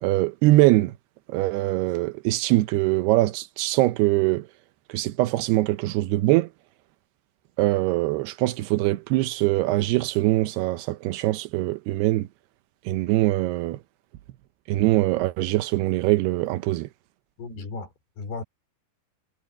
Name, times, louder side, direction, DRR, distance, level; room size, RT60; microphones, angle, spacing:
voice 1, 0.0-0.9 1.3-4.5 4.9-6.5 7.6-12.3 12.9-13.8 14.7-16.9, right 18 dB, 85° right, 2.8 m, -22 dB
voice 2, 17.4-18.4, left 4 dB, 80° left, 6.1 m, -35 dB
omnidirectional pair, 4.6 m